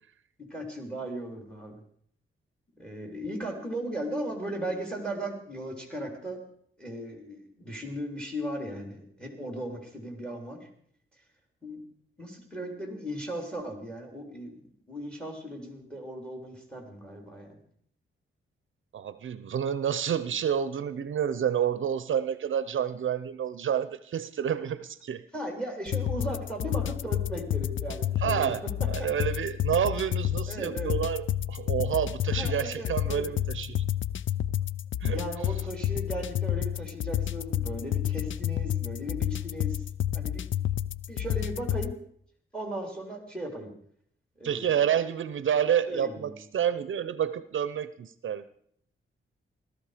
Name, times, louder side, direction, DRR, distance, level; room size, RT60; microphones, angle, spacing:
voice 1, 0.4-1.8 2.8-6.4 6.8-10.7 11.6-11.8 12.2-14.6 14.9-17.6 25.3-28.5 29.0-29.1 30.5-31.0 32.3-33.3 35.0-39.8 40.1-40.5 41.1-41.9 42.5-43.7 44.4-44.8 45.9-46.4, right 1 dB, 5° left, 3 dB, 3.5 m, -37 dB
voice 2, 18.9-25.2 28.2-28.6 28.9-33.8 35.0-35.2 44.4-48.4, right 9 dB, 65° right, 14 dB, 0.7 m, -29 dB
sound 1, 25.9-41.9, left 11 dB, 65° left, 0.5 m, -30 dB
17.5 x 13.0 x 5.0 m, 0.65 s
wide cardioid pair, 125°, 21 cm